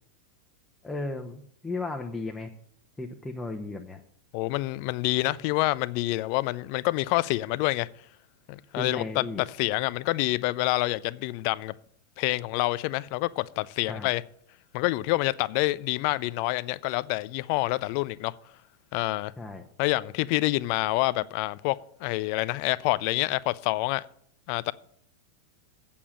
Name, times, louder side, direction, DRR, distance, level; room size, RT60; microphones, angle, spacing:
voice 1, 0.8-2.5 3.0-4.0 8.8-9.4 13.9-14.1 19.4-19.6, left 2 dB, 10° left, 1.0 m, -35 dB
voice 2, 4.3-7.9 8.5-11.7 12.2-14.2 14.7-18.3 18.9-19.3 19.8-24.1 24.5-24.7, left 19 dB, 45° left, 0.4 m, -27 dB
8.4 x 7.0 x 7.6 m
figure-of-eight pair, 90°, 0 cm